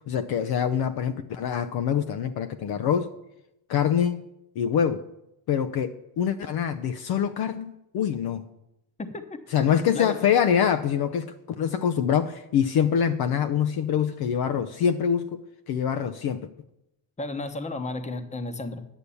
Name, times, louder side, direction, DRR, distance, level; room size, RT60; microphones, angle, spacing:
voice 1, 0.1-3.1 3.7-4.2 4.6-5.1 5.5-8.5 9.5-15.4 15.7-16.5, left 8 dB, 55° left, 0.7 m, -25 dB
voice 2, 9.0-9.4 9.9-10.2 17.2-18.8, left 2 dB, 15° left, 1.0 m, -33 dB
10.0 x 6.7 x 6.9 m
cardioid pair, 110°, 45 cm